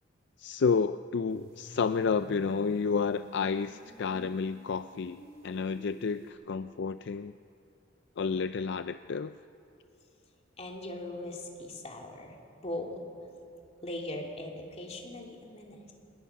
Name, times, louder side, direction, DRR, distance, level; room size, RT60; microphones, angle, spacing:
voice 1, 0.4-7.3 8.2-9.3, left 5 dB, 65° left, 11 dB, 0.4 m, -30 dB
sound 1, 1.3-6.3, right 1 dB, 75° right, 3.6 m, -51 dB
voice 2, 10.6-13.0 13.8-15.9, left 1 dB, 35° left, 0 dB, 2.8 m, -40 dB
26.5 x 19.5 x 5.9 m, 2.6 s
head